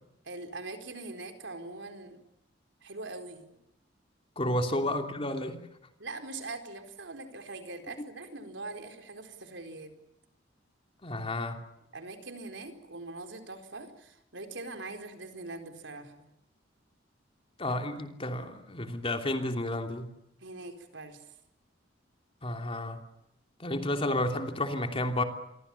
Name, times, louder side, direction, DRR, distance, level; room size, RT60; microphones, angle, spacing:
voice 1, 0.2-2.2 2.8-3.6 4.4-4.5 6.0-9.9 11.9-16.3 20.4-21.3, right 2 dB, 75° right, 4.3 m, -42 dB
voice 2, 4.4-5.6 11.0-11.6 17.6-20.1 22.4-23.0 23.6-25.2, left 1 dB, 30° left, 3.1 m, -31 dB
28.5 x 23.0 x 7.2 m
head